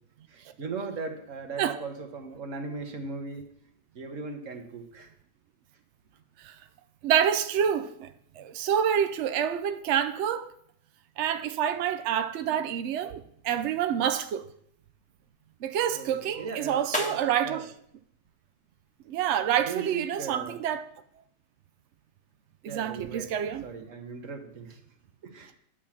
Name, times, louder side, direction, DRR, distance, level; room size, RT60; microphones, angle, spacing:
voice 1, 0.3-3.5 3.9-5.1 15.9-17.6 19.6-20.6 22.7-23.3 23.6-24.8 25.2-25.5, right 4 dB, 50° right, 1.5 m, -38 dB
voice 2, 7.0-8.1 8.4-10.5 11.2-14.5 15.6-17.7 19.1-20.9 22.6-23.6, right 9 dB, 80° right, 0.6 m, -27 dB
sound 1, 13.3-19.2, equal, 5° left, 1.0 m, -42 dB
9.9 x 4.9 x 7.3 m
omnidirectional pair, 1.9 m